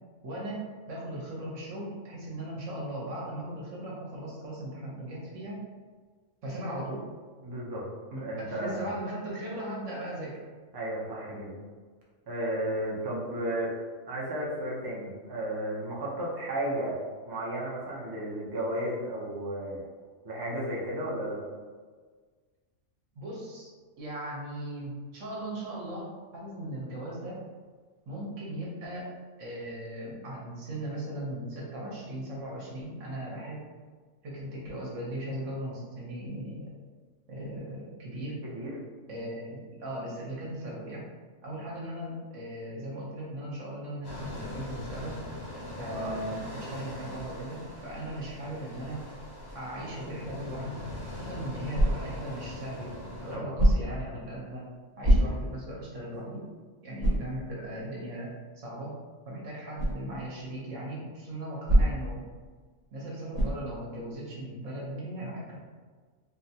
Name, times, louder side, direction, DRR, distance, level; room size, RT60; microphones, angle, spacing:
voice 1, 0.2-5.6 6.4-7.1 8.1-10.4 23.1-23.7 24.0-27.4 28.1-29.1 29.4-33.6 34.2-36.7 37.3-38.4 39.1-41.0 41.4-45.2 45.8-49.0 49.5-50.9 51.1-52.9 53.2-54.6 55.0-56.4 56.8-58.9 59.3-62.2 62.9-65.6, right 1 dB, 70° right, -4 dB, 1.2 m, -38 dB
voice 2, 7.4-7.9 8.1-8.9 10.7-11.6 12.3-13.7 14.1-19.9 20.2-21.4 38.4-38.7 45.9-46.2 53.3-53.5, right 1 dB, 30° right, -5 dB, 0.4 m, -33 dB
sound 1, 44.0-53.3, left 1 dB, 30° left, 0.4 m, -41 dB
sound 2, 51.7-52.3 53.5-54.1 55.0-55.6 56.1-56.2 57.0-57.3 59.8-60.0 61.7-62.2 63.3-63.7, equal, 55° right, 1.5 m, -23 dB
3.8 x 2.1 x 2.7 m, 1.5 s
omnidirectional pair, 1.3 m